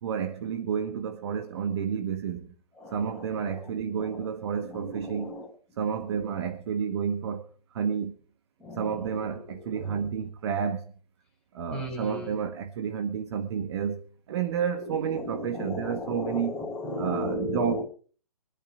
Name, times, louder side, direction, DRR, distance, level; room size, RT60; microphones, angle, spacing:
voice 1, 0.0-2.5 2.9-5.3 5.8-8.1 8.7-10.9 11.5-16.5 17.0-17.8, right 7 dB, 45° right, 1.7 m, -30 dB
voice 2, 2.8-5.5 8.6-9.2 9.4-10.0 11.7-12.4 14.7-17.8, left 1 dB, 5° left, 7.0 m, -36 dB
23.5 x 11.0 x 4.9 m
figure-of-eight pair, 125°, 20 cm